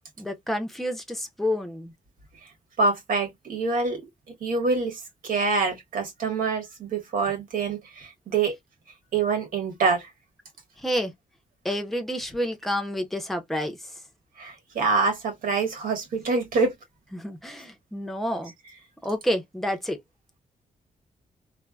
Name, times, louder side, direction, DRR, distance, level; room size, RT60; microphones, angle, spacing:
voice 1, 0.2-1.9 10.8-11.1 11.6-13.9 17.1-18.5 19.0-20.0, equal, ahead, 0.6 m, -29 dB
voice 2, 2.8-4.1 4.4-8.6 9.1-10.1 14.4-16.7, right 4 dB, 90° right, 1.4 m, -26 dB
3.2 x 2.1 x 2.3 m
wide cardioid pair, 165°, 14 cm